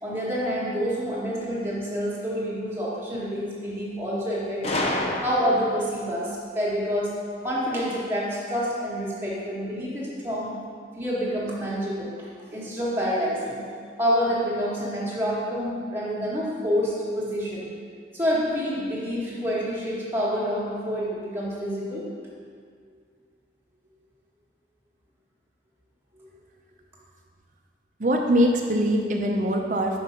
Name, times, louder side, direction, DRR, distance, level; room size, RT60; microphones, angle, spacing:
voice 1, 0.0-4.6 5.2-7.1 7.4-10.6 10.9-13.6 14.0-17.7 18.1-22.1 26.2-26.3, equal, 15° right, -7 dB, 1.4 m, -27 dB
Gunshot gunfire, 4.6-5.9, left 1 dB, 35° left, 0.6 m, -28 dB
voice 2, 28.0-30.0, equal, 45° right, 2 dB, 0.6 m, -22 dB
5.4 x 4.8 x 5.7 m, 2.1 s
head